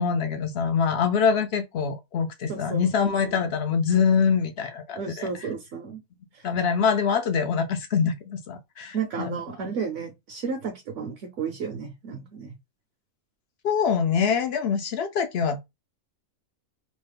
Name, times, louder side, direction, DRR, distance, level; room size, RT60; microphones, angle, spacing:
voice 1, 0.0-5.3 6.4-9.4 13.6-15.6, left 6 dB, 65° left, 0.6 m, -24 dB
voice 2, 2.5-2.9 4.9-6.0 6.3-6.5 8.9-12.5, right 6 dB, 65° right, 1.0 m, -32 dB
3.1 x 2.0 x 3.3 m
omnidirectional pair, 1.5 m